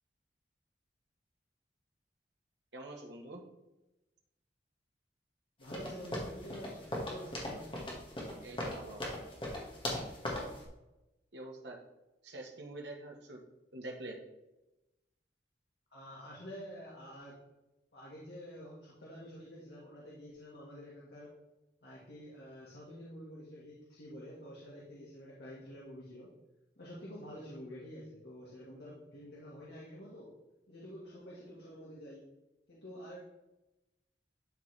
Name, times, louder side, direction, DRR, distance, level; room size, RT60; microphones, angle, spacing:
voice 1, 2.7-3.4 8.4-9.0 10.4-10.5 11.3-11.8 12.2-13.4 13.7-14.2, right 2 dB, 85° right, 1 dB, 1.4 m, -45 dB
voice 2, 5.6-7.7 15.9-17.4 17.9-21.3 21.8-26.3 26.8-30.3 30.7-32.3 32.7-33.2, equal, 75° left, -6 dB, 1.7 m, -48 dB
sound 1, 5.7-10.6, left 1 dB, 30° left, 1.7 m, -39 dB
12.0 x 4.1 x 3.3 m, 0.99 s
head